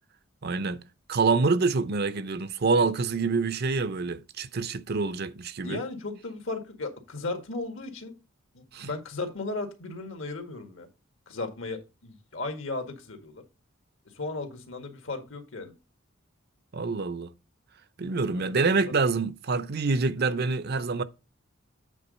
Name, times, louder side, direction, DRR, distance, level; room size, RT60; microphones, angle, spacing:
voice 1, 0.4-0.8 1.1-5.8 8.7-8.9 16.7-17.3 18.0-21.0, right 4 dB, 55° right, 0.6 m, -26 dB
voice 2, 5.6-8.2 8.5-10.9 11.3-13.4 14.1-15.7 18.3-18.7, left 3 dB, 70° left, 1.8 m, -36 dB
8.4 x 3.9 x 5.3 m
head